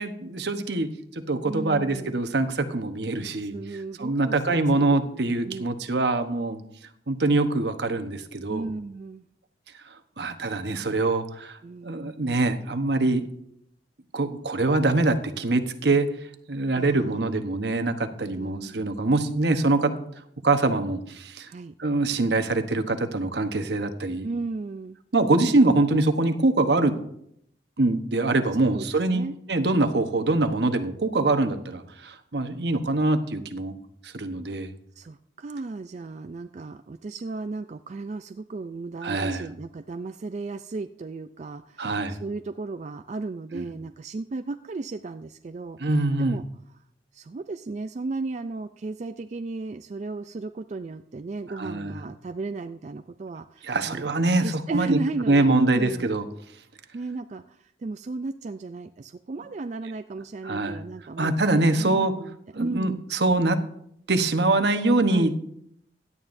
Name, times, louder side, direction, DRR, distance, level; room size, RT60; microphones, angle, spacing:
voice 1, 0.0-3.5 4.0-6.6 7.1-8.7 10.2-13.2 14.1-16.1 16.5-19.9 20.4-21.5 21.8-24.3 25.1-26.9 27.8-33.7 34.0-34.7 39.0-39.5 41.8-42.2 43.5-43.6 45.8-46.4 51.6-52.1 53.6-55.0 55.3-56.2 60.4-60.8 61.2-62.1 62.5-63.6 64.1-65.3, right 2 dB, 70° right, 8 dB, 1.0 m, -24 dB
voice 2, 1.4-2.2 3.4-5.6 8.5-9.2 11.6-12.1 16.8-17.2 18.2-18.9 21.5-21.7 24.2-25.0 28.6-28.9 29.1-29.4 35.0-45.8 46.2-46.8 47.1-54.1 54.4-56.1 56.9-63.0 65.1-65.4, right 3 dB, 40° right, 8 dB, 0.3 m, -34 dB
17.0 x 11.0 x 2.6 m, 0.72 s
head